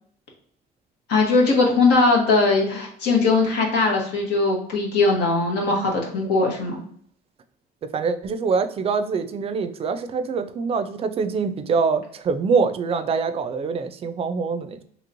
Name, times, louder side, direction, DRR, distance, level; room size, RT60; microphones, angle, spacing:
voice 1, 1.1-6.8, left 3 dB, 85° left, -1 dB, 1.0 m, -20 dB
voice 2, 7.9-14.8, right 5 dB, 35° right, 10 dB, 0.3 m, -24 dB
3.0 x 2.8 x 2.5 m, 0.63 s
cardioid pair, 110°, 17 cm